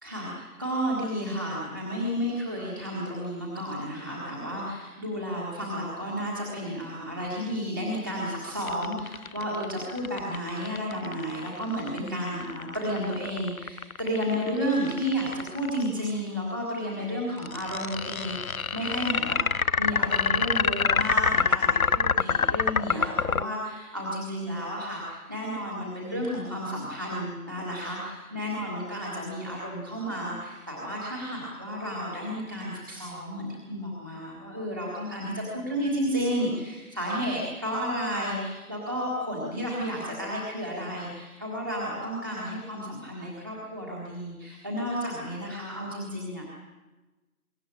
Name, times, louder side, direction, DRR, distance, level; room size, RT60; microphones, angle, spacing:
voice 1, 0.0-46.5, equal, 15° right, -5 dB, 1.7 m, -32 dB
sound 1, 8.6-15.9 17.4-23.4, left 5 dB, 70° left, 0.7 m, -26 dB
23.5 x 14.5 x 9.8 m, 1.2 s
figure-of-eight pair, 170°, 44 cm